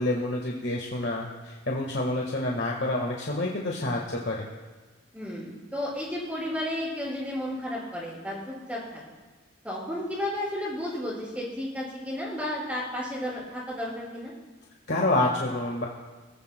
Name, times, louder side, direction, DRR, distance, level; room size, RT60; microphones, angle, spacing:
voice 1, 0.0-4.5 14.9-15.9, left 2 dB, 60° left, -1 dB, 1.5 m, -28 dB
voice 2, 5.1-9.0 9.6-14.3, left 1 dB, 5° right, -6 dB, 5.0 m, -33 dB
22.5 x 15.0 x 2.2 m, 1.3 s
head